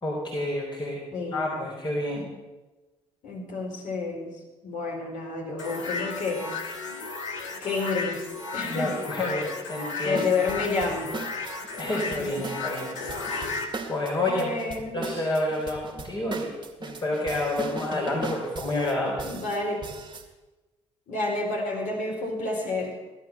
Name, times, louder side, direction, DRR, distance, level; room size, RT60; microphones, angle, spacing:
voice 1, 0.0-1.0 1.3-2.2 8.6-10.2 11.8-13.0 13.9-14.6 14.9-19.2, left 1 dB, 30° left, -3 dB, 4.1 m, -29 dB
voice 2, 1.1-1.6 2.1-2.3 3.2-4.3 4.6-6.6 7.6-8.2 8.5-9.0 10.0-11.1 11.8-12.3 14.2-15.0 19.2-19.8 21.1-23.0, left 3 dB, 60° left, -1 dB, 4.4 m, -30 dB
sound 1, 5.6-13.7, left 4 dB, 85° left, 1.4 m, -34 dB
sound 2, 10.1-20.3, right 4 dB, 30° right, 2.0 m, -38 dB
16.5 x 12.0 x 5.9 m, 1.1 s
hypercardioid pair, 45°, 15 cm